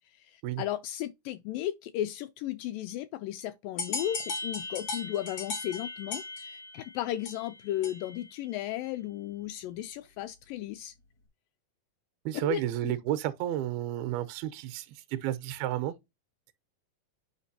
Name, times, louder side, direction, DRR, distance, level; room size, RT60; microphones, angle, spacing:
voice 1, 0.1-10.9 12.3-12.9, left 13 dB, 85° left, 1.9 m, -35 dB
sound 1, 3.8-8.3, left 3 dB, 70° left, 1.1 m, -37 dB
voice 2, 12.3-15.9, right 12 dB, 85° right, 2.6 m, -32 dB
9.0 x 5.2 x 2.7 m
omnidirectional pair, 4.4 m